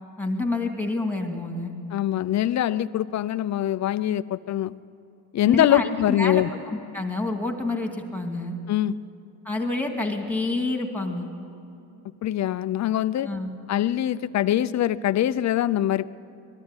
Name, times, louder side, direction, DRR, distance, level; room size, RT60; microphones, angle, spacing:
voice 1, 0.2-1.7 5.5-5.9 6.2-8.6 9.4-11.3 13.2-13.5, left 2 dB, 5° left, 3 dB, 2.3 m, -28 dB
voice 2, 1.9-4.7 5.3-6.5 8.7-8.9 12.2-13.3 13.7-16.1, left 12 dB, 35° left, 14 dB, 0.6 m, -23 dB
21.0 x 14.0 x 9.7 m, 2.7 s
cardioid pair, 105°, 48 cm